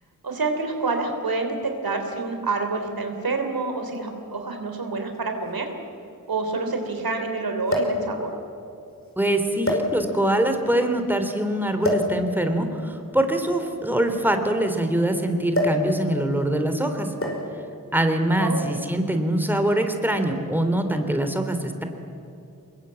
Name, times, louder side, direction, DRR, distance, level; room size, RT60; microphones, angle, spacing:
voice 1, 0.2-5.7 6.3-8.3 18.4-18.8, right 3 dB, 80° right, 5 dB, 3.4 m, -27 dB
sound 1, 3.9-4.0 5.1-5.2 5.5-5.6 7.7-8.1 8.9-9.1 9.6-10.3 11.8-12.2 13.3-14.9 15.5-15.9 16.2-16.4 17.2-17.6 18.5-18.8, left 1 dB, 40° left, 5.5 m, -26 dB
voice 2, 9.2-17.1 17.9-21.8, right 1 dB, 5° right, 6 dB, 2.9 m, -23 dB
24.0 x 21.5 x 8.8 m, 2.7 s
cardioid pair, 55°, 35 cm